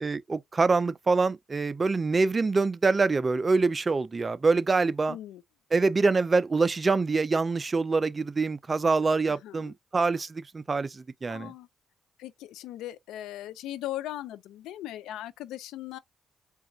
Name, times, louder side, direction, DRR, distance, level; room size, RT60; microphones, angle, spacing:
voice 1, 0.0-5.2 5.7-11.5, right 4 dB, 30° right, 0.5 m, -25 dB
voice 2, 5.1-5.4 9.3-9.7 11.3-11.7 12.2-16.0, left 13 dB, 90° left, 0.5 m, -39 dB
4.7 x 2.5 x 3.6 m
cardioid pair, 90°, 0 cm